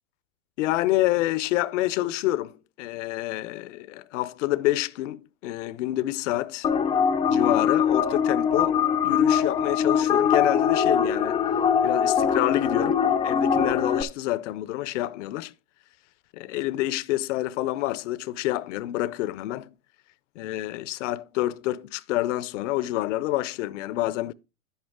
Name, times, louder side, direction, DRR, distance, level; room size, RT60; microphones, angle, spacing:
voice 1, 0.6-6.7 7.3-8.8 9.0-11.5 11.8-15.5 16.3-19.7 20.4-24.3, left 16 dB, 55° left, 0.7 m, -28 dB
sound 1, 6.6-14.0, left 7 dB, 10° left, 0.5 m, -22 dB
10.5 x 8.1 x 3.6 m
hypercardioid pair, 135°, 43 cm